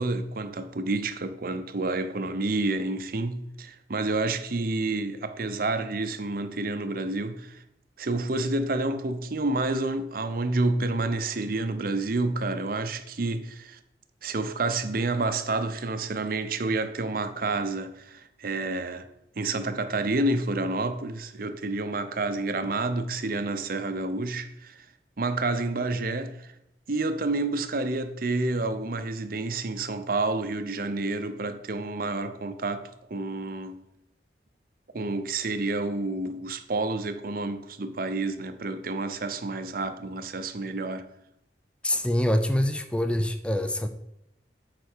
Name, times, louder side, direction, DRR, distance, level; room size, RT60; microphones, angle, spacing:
voice 1, 0.0-7.6 8.0-13.8 14.2-19.1 19.4-24.8 25.2-26.5 26.9-33.8 34.9-41.1, right 2 dB, 55° right, 0.7 m, -29 dB
voice 2, 41.8-43.9, left 1 dB, 5° left, 0.5 m, -25 dB
9.0 x 4.1 x 6.6 m
head